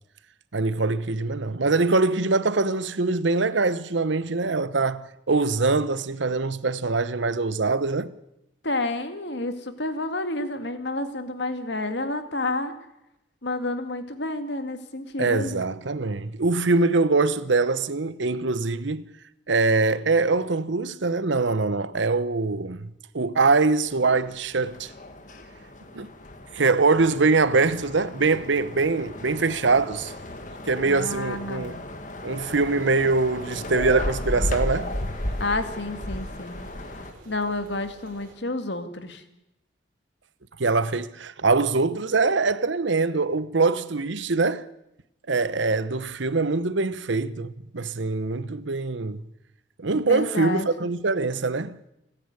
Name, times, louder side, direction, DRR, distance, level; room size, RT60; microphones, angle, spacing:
voice 1, 0.5-8.1 15.2-19.0 19.5-24.9 25.9-26.1 26.5-30.1 30.7-31.8 32.2-34.9 40.6-44.7 45.3-49.2 49.8-51.8, right 3 dB, 75° right, 0.9 m, -23 dB
voice 2, 8.6-12.7 13.4-15.6 30.8-31.8 35.4-36.7 37.3-39.2 50.1-50.7, left 2 dB, 65° left, 2.1 m, -30 dB
sound 1, 23.8-37.1, left 1 dB, 40° left, 1.9 m, -34 dB
sound 2, 32.4-38.3, right 1 dB, 45° right, 4.1 m, -51 dB
29.5 x 10.0 x 9.7 m
head